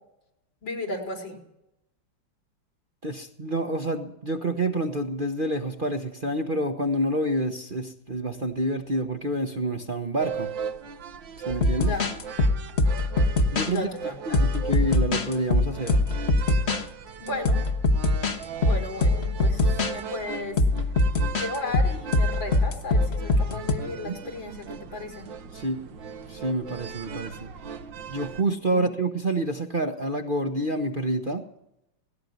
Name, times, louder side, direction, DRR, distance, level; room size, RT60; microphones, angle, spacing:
voice 1, 0.6-1.4 11.8-12.0 13.7-14.4 17.2-17.6 18.6-20.6 21.3-24.6 24.9-25.2 28.6-28.8, left 2 dB, 75° left, 3 dB, 5.0 m, -34 dB
voice 2, 3.0-10.5 11.5-11.9 13.5-13.9 14.3-16.0 24.0-24.2 25.5-25.8 26.3-27.5 28.1-31.4, right 1 dB, 30° right, 4 dB, 1.1 m, -28 dB
sound 1, 10.2-28.4, right 6 dB, 75° right, 2.0 m, -38 dB
sound 2, 11.5-13.8 14.3-16.8 17.4-18.4 18.6-19.9 20.6-23.7, left 2 dB, 40° left, 1.4 m, -22 dB
18.5 x 16.5 x 9.5 m, 0.83 s
omnidirectional pair, 2.1 m